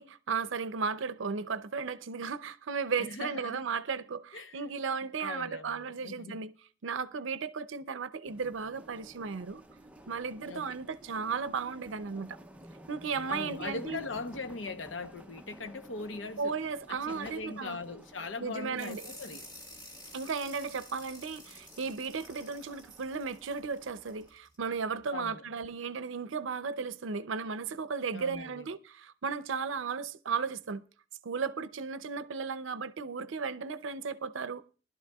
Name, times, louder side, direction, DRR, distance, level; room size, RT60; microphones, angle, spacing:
voice 1, 0.0-6.5 6.8-9.6 10.1-12.4 12.9-14.0 16.4-17.8 18.4-19.1 20.1-30.8 31.2-34.6, right 5 dB, 85° right, 0.6 m, -35 dB
voice 2, 3.0-3.6 4.3-4.8 5.2-6.4 10.5-10.7 13.3-16.5 16.9-19.5 25.1-25.4 28.1-28.7, left 3 dB, 75° left, 0.9 m, -40 dB
sound 1, 8.3-24.3, right 1 dB, 5° right, 0.6 m, -53 dB
sound 2, 18.8-24.6, left 1 dB, 20° left, 2.7 m, -51 dB
20.0 x 12.0 x 2.3 m
head